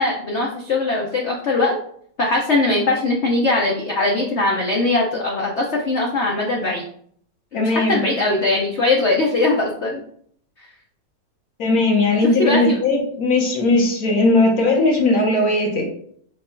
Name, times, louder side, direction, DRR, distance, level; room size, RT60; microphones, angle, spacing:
voice 1, 0.0-1.8 2.2-6.8 7.5-10.0 12.2-12.8, left 2 dB, 80° left, -1 dB, 0.6 m, -20 dB
voice 2, 7.5-8.0 11.6-15.9, left 2 dB, 55° left, 1 dB, 1.3 m, -18 dB
4.4 x 2.3 x 4.3 m, 0.63 s
omnidirectional pair, 2.1 m